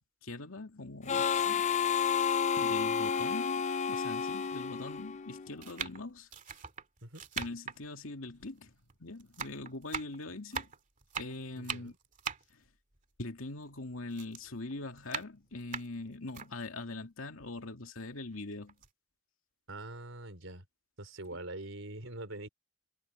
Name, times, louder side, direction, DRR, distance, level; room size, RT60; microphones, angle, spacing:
voice 1, 0.2-1.7 2.6-6.3 7.4-8.7 9.0-10.7 11.2-11.9 12.5-12.6 13.2-18.8, left 2 dB, 90° left, 2.4 m, -42 dB
Harmonica, 1.1-5.5, left 7 dB, 35° left, 0.5 m, -31 dB
sound 1, 2.8-2.9 3.8-3.9 4.8-5.1 5.6-8.9 9.2-13.8 14.1-16.5 17.0-17.1 17.4-18.4 18.7-18.9, right 6 dB, 40° right, 2.3 m, -42 dB
voice 2, 11.6-12.0 19.7-20.6 21.0-22.5, right 2 dB, 70° right, 4.2 m, -44 dB
head